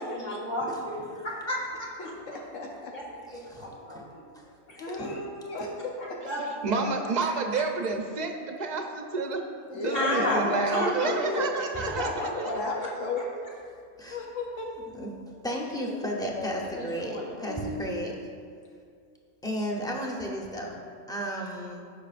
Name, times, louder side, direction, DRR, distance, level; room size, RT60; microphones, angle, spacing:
voice 1, 0.0-1.9 2.9-3.0 3.3-4.2 4.7-5.2 6.0-6.9 7.2-7.3 9.7-11.5 11.7-12.1 16.5-17.3, equal, 35° left, -6 dB, 1.8 m, -33 dB
voice 2, 2.0-2.9 4.8-6.2 9.7-11.5 11.9-13.3 13.7-13.8 14.1-14.7 15.5-16.5 17.5-18.1, left 2 dB, 80° left, -1 dB, 1.2 m, -34 dB
voice 3, 3.3-4.0 4.3-4.5 4.9-5.1 7.2-7.3 14.0-14.2 14.9-18.1 19.4-21.8, equal, 5° left, -1 dB, 0.7 m, -34 dB
voice 4, 6.6-9.4 9.8-12.5, right 4 dB, 45° right, 4 dB, 0.7 m, -29 dB
14.5 x 5.5 x 2.5 m, 2.2 s
omnidirectional pair, 1.3 m